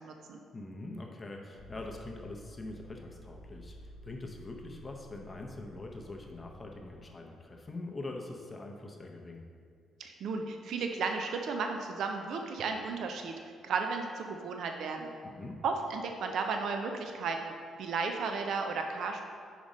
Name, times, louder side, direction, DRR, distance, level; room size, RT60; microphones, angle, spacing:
voice 1, 0.0-0.4 10.0-15.2 15.6-19.2, right 4 dB, 70° right, 4 dB, 0.4 m, -34 dB
voice 2, 0.5-9.4 15.2-15.6, left 2 dB, 25° left, 1 dB, 0.6 m, -43 dB
sound 1, 1.6-7.1, equal, 85° left, 1.0 m, -53 dB
5.0 x 5.0 x 4.1 m, 2.2 s
cardioid pair, 90°, 0 cm